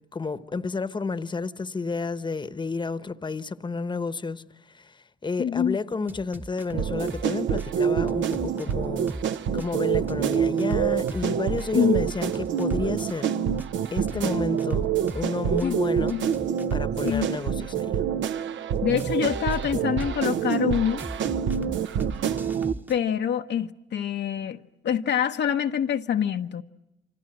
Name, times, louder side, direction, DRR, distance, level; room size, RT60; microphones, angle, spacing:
voice 1, 0.1-9.1 9.5-13.3 13.9-14.9 15.1-16.2 16.7-18.0, left 4 dB, 25° left, 1.1 m, -31 dB
voice 2, 5.4-5.8 11.7-12.0 15.6-15.8 16.1-16.3 17.0-17.3 18.8-21.0 22.9-26.6, left 8 dB, 60° left, 0.9 m, -25 dB
sound 1, 6.1-7.3 7.6-11.3 11.6-15.3 15.6-17.3 19.0-20.6 21.0-22.9, right 1 dB, 10° right, 1.1 m, -39 dB
sound 2, 6.7-22.7, right 8 dB, 70° right, 1.0 m, -27 dB
29.0 x 25.0 x 7.8 m
cardioid pair, 90°, 20 cm